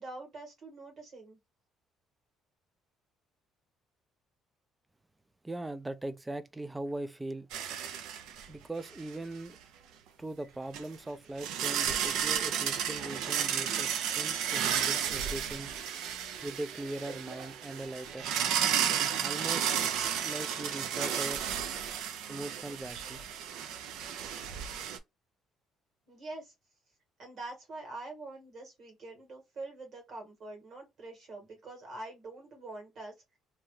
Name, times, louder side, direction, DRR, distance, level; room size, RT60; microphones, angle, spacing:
voice 1, 0.0-1.4 26.1-26.5 27.2-33.1, right 2 dB, 50° right, 1.6 m, -45 dB
voice 2, 5.4-7.5 8.5-9.6 10.2-15.7 16.4-18.6 19.2-19.7 20.2-21.4 22.3-23.2, right 2 dB, 10° right, 0.3 m, -40 dB
sound 1, 7.5-8.5 8.9-9.0 10.7-10.8 11.4-25.0, right 9 dB, 85° right, 0.4 m, -33 dB
2.8 x 2.3 x 3.1 m
cardioid pair, 135°, 0 cm